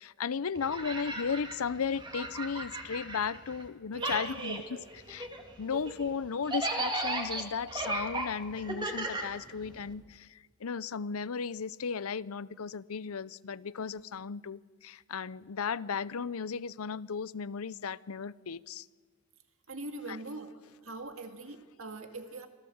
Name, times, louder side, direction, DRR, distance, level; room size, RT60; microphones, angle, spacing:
voice 1, 0.0-4.6 5.1-5.3 5.6-18.9 20.1-20.2, left 6 dB, 90° left, 19 dB, 0.6 m, -35 dB
sound 1, 0.5-3.7 3.9-9.9, right 2 dB, 20° right, 2.4 m, -36 dB
voice 2, 3.9-4.8 19.7-20.5 20.8-22.5, right 3 dB, 70° right, 6 dB, 2.1 m, -42 dB
25.5 x 16.0 x 7.9 m, 1.5 s
head